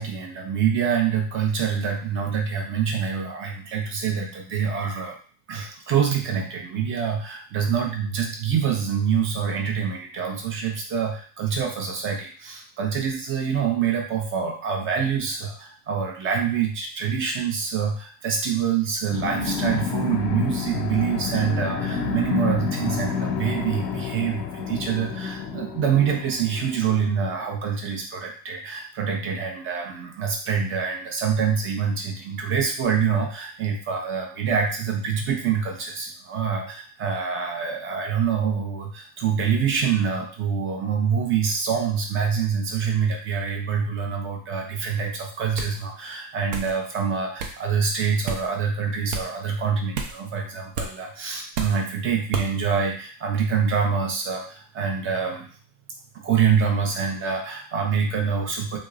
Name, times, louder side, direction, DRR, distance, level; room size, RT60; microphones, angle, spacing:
voice 1, 0.0-5.2 5.5-55.5 56.2-58.8, right 7 dB, 25° right, 1 dB, 0.5 m, -26 dB
sound 1, 19.1-27.3, left 5 dB, 90° left, 0.6 m, -29 dB
sound 2, 45.6-45.8 46.5-46.7 47.4-47.6 48.3-48.5 49.1-49.3 49.9-50.2 50.7-50.9 51.5-51.8 52.3-52.5, right 4 dB, 75° right, 0.7 m, -30 dB
2.9 x 2.0 x 2.4 m, 0.42 s
supercardioid pair, 120°, 50 cm